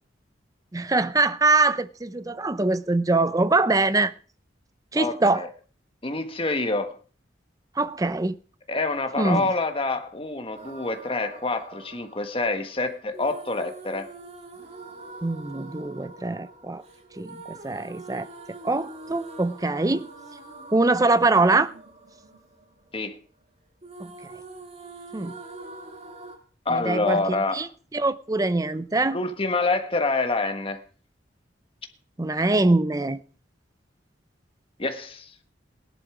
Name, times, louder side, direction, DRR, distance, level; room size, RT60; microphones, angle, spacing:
voice 1, 0.7-4.1 4.9-5.5 7.8-8.4 9.2-9.5 15.2-16.8 17.2-18.3 18.6-20.1 20.7-21.7 24.0-24.1 25.1-25.3 26.7-27.7 27.9-29.2 32.2-33.2, right 3 dB, 20° right, 0.6 m, -23 dB
voice 2, 4.9-5.5 6.0-7.0 8.7-14.1 22.9-23.2 26.6-27.7 29.1-30.8 34.8-35.3, left 3 dB, 30° left, 1.4 m, -27 dB
sound 1, 10.5-23.5 23.8-26.4, right 2 dB, 35° right, 2.3 m, -44 dB
17.0 x 11.0 x 4.9 m
head